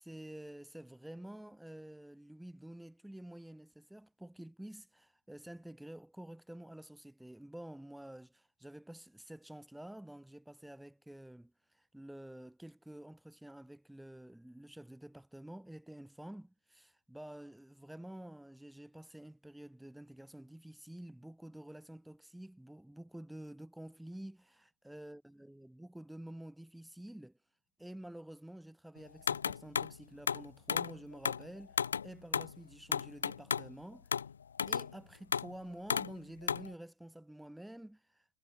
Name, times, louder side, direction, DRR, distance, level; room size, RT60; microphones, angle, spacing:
voice 1, 0.0-27.4 27.8-34.1 34.6-38.3, right 1 dB, 5° right, 4.8 m, -50 dB
sound 1, 29.3-30.0 30.3-31.0 31.2-31.5 31.8-32.6 32.9-33.7 34.1-34.3 34.6-34.9 35.3-35.5 35.9-36.1 36.4-36.7, left 7 dB, 70° left, 0.3 m, -33 dB
figure-of-eight pair, 90°, 0 cm